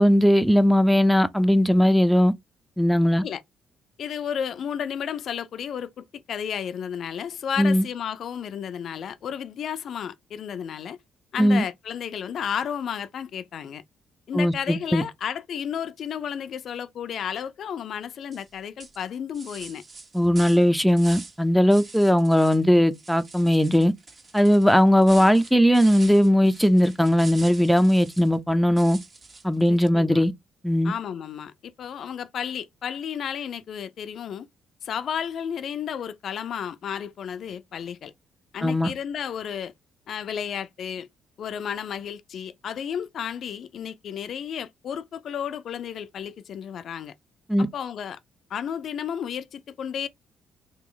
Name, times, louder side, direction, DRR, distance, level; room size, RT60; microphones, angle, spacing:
voice 1, 0.0-2.3 2.8-3.2 7.6-7.8 11.4-11.6 14.3-15.0 20.1-23.9 24.3-29.0 29.4-30.3 30.6-30.9 38.6-38.9 47.5-47.7, equal, ahead, 0.5 m, -19 dB
voice 2, 4.0-11.0 11.3-13.8 14.3-19.8 29.7-30.2 30.8-34.5 34.8-38.1 38.5-39.7 40.1-41.1 41.4-47.1 47.7-48.2 48.5-50.1, left 8 dB, 65° left, 0.4 m, -32 dB
sound 1, 18.3-18.5 18.8-21.4 21.7-22.6 22.9-28.3 28.8-29.7, right 3 dB, 40° right, 1.4 m, -44 dB
3.3 x 3.0 x 3.8 m
cardioid pair, 90°, 0 cm